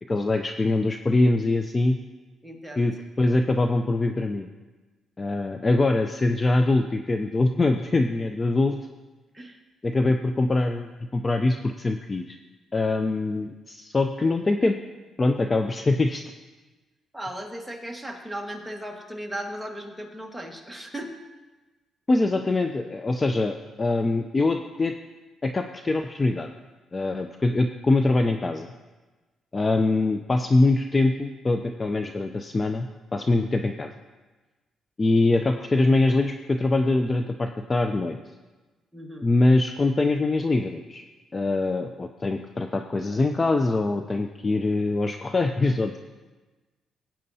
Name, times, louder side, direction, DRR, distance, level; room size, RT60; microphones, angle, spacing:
voice 1, 0.1-2.0 2.8-4.5 5.2-8.8 9.8-12.4 12.7-14.8 15.2-16.2 22.1-24.9 25.4-26.5 26.9-28.7 29.5-32.9 33.1-33.9 35.0-38.2 39.2-41.0 41.3-46.0, left 2 dB, 25° left, 6 dB, 0.5 m, -23 dB
voice 2, 2.4-2.9 9.3-9.6 17.1-21.1 38.9-39.3, right 1 dB, ahead, 1 dB, 1.5 m, -36 dB
17.0 x 8.7 x 2.8 m, 1.2 s
cardioid pair, 90°, 0 cm